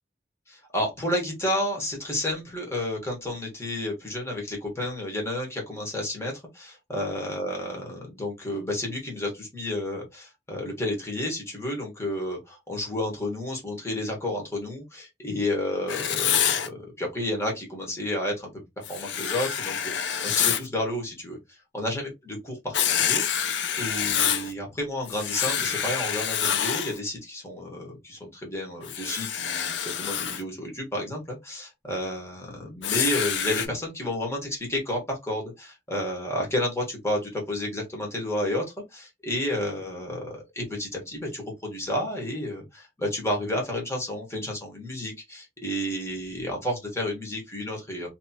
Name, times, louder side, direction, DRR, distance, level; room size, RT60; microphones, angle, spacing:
voice 1, 0.5-18.6 18.9-48.1, left 1 dB, 15° left, 1.4 m, -31 dB
Writing, 15.9-16.7 18.8-20.7 22.7-24.5 25.1-27.0 28.8-30.4 32.8-33.7, left 9 dB, 75° left, 0.5 m, -27 dB
3.0 x 2.9 x 2.8 m
head